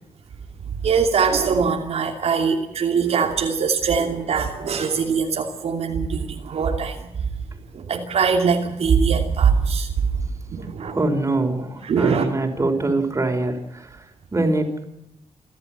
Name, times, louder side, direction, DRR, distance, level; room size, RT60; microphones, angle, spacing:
voice 1, 0.8-7.0 7.7-9.9 10.5-11.0 11.8-12.3, right 6 dB, 75° right, 2 dB, 2.8 m, -22 dB
voice 2, 10.8-14.8, right 2 dB, 25° right, 4 dB, 5.1 m, -24 dB
28.5 x 12.5 x 7.8 m, 0.84 s
cardioid pair, 95°, 11 cm